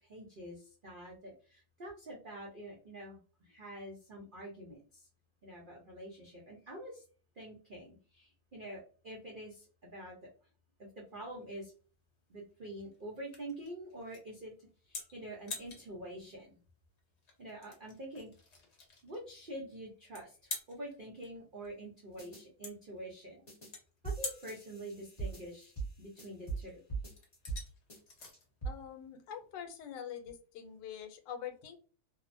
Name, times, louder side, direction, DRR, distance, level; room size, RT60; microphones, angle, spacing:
voice 1, 0.0-5.1 5.4-7.0 7.4-10.2 10.8-11.7 12.3-14.5 14.9-16.6 17.4-18.3 19.0-23.4 24.0-25.7 26.0-26.8, right 1 dB, 75° right, -3 dB, 0.4 m, -46 dB
sound 1, 11.1-29.9, left 4 dB, 50° left, 0.9 m, -49 dB
sound 2, 22.2-22.4 23.5-23.7 24.0-26.6 26.9-27.6 27.9-28.7, right 4 dB, 25° left, 0.8 m, -41 dB
voice 2, 28.6-31.8, left 8 dB, 90° left, 7 dB, 1.2 m, -45 dB
2.7 x 2.0 x 2.5 m, 0.39 s
omnidirectional pair, 1.8 m